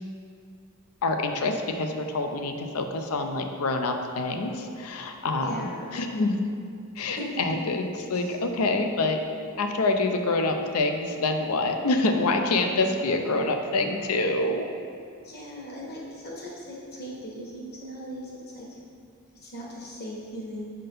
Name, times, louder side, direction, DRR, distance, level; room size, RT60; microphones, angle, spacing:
voice 1, 1.0-6.4 7.0-9.2 9.6-14.7, left 2 dB, 80° left, 5 dB, 0.6 m, -26 dB
voice 2, 5.4-5.9 7.0-7.3 8.1-8.3 15.2-18.8 19.3-20.7, equal, 45° left, -4 dB, 1.4 m, -39 dB
5.5 x 3.7 x 5.3 m, 2.3 s
head